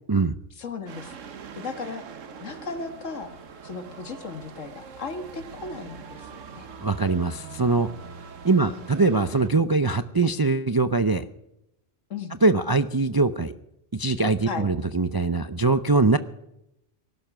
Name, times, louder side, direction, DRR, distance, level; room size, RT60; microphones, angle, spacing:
voice 1, 0.6-1.1 1.5-2.1 2.4-3.3 3.6-6.7 8.6-9.0 12.1-12.3 14.5-14.7, left 4 dB, 80° left, 9 dB, 1.9 m, -36 dB
sound 1, 0.9-9.5, right 6 dB, 90° right, 1.5 m, -43 dB
voice 2, 6.8-7.9 8.4-11.2 12.4-13.5 13.9-16.2, right 3 dB, 35° right, 11 dB, 0.3 m, -22 dB
19.0 x 12.0 x 6.0 m, 0.86 s
omnidirectional pair, 1.3 m